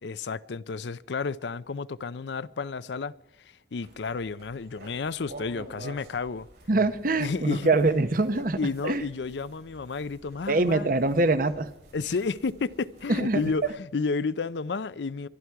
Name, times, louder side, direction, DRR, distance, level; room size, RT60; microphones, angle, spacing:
voice 1, 0.0-3.1 3.4-6.5 7.2-7.7 8.3-11.0 11.9-15.3, left 4 dB, 75° left, 0.5 m, -31 dB
sound 1, 3.8-13.7, right 1 dB, 65° right, 6.7 m, -50 dB
voice 2, 6.7-8.6 8.8-9.0 10.5-11.7 13.2-13.4, right 2 dB, 50° right, 0.9 m, -24 dB
24.0 x 11.5 x 4.7 m
head